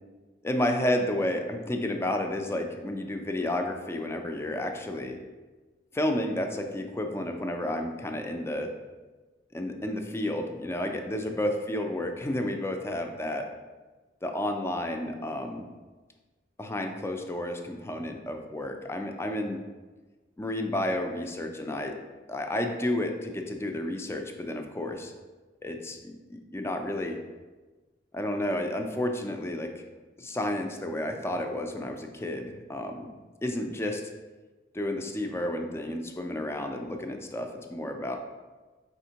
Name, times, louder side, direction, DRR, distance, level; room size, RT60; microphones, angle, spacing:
voice 1, 0.4-5.2 5.9-8.7 9.5-13.5 14.2-15.6 16.6-19.6 20.4-22.0 22.3-25.1 25.6-27.2 28.1-29.8 30.2-33.1 33.4-34.0 34.7-38.2, left 1 dB, 15° left, 4 dB, 0.3 m, -31 dB
4.9 x 3.5 x 2.8 m, 1.3 s
head